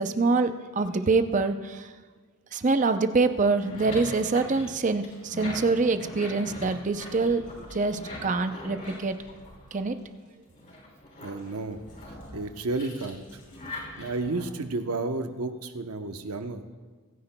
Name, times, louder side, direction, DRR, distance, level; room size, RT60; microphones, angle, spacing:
voice 1, 0.0-1.9 2.5-9.2 9.7-10.0, right 3 dB, 35° right, 9 dB, 0.5 m, -25 dB
sound 1, 3.4-10.1 10.5-14.4, left 1 dB, 40° left, 3.2 m, -42 dB
voice 2, 11.2-11.8 12.3-13.2 14.0-16.7, right 3 dB, 85° right, 7 dB, 0.8 m, -31 dB
24.5 x 9.9 x 2.2 m, 1.5 s
head